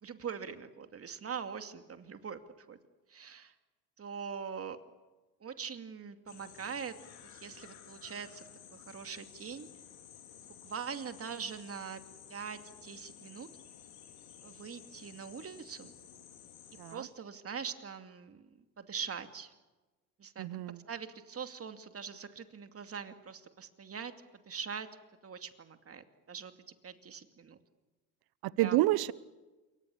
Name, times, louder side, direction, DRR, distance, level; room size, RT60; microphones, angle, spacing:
voice 1, 0.0-2.8 3.1-3.5 4.0-4.8 5.4-7.0 7.2-9.7 10.6-12.0 12.3-13.5 14.4-15.9 16.9-18.5 18.8-19.5 20.2-24.1 24.5-24.9 25.2-26.5 26.8-27.6 28.6-28.9, right 6 dB, 35° right, 8 dB, 2.5 m, -43 dB
sound 1, 6.3-17.0, left 9 dB, 60° left, 4.7 m, -54 dB
voice 2, 20.4-20.8 28.4-29.1, right 16 dB, 60° right, 19 dB, 1.1 m, -29 dB
28.0 x 23.5 x 7.2 m, 1.2 s
hypercardioid pair, 70°, 43 cm